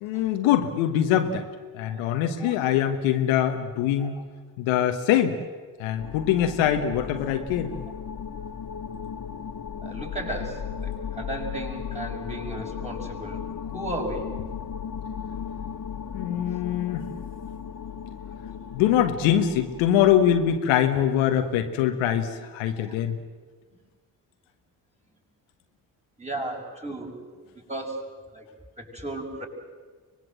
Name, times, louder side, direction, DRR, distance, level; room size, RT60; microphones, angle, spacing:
voice 1, 0.0-1.4 1.7-4.1 4.6-5.4 5.8-7.7 16.1-17.0 18.7-23.2, left 10 dB, 80° left, 7 dB, 1.3 m, -23 dB
voice 2, 1.8-2.5 4.0-4.2 6.4-6.5 9.8-14.3 16.6-16.7 17.9-18.6 22.8-23.0 26.2-28.0 28.3-28.5 28.8-29.5, right 1 dB, 15° right, 0 dB, 6.0 m, -36 dB
sound 1, 6.0-20.6, left 7 dB, 40° left, 1.2 m, -36 dB
24.5 x 19.5 x 7.7 m, 1.4 s
hypercardioid pair, 40°, 47 cm